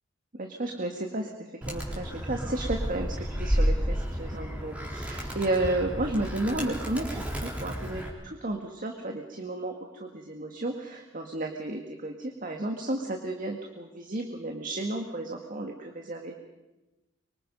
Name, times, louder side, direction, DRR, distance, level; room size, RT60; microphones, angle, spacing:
voice 1, 0.4-16.3, right 2 dB, 45° right, 3 dB, 1.9 m, -33 dB
Animal, 1.6-8.1, equal, 5° right, 4.0 m, -31 dB
24.5 x 24.5 x 5.4 m, 1.0 s
head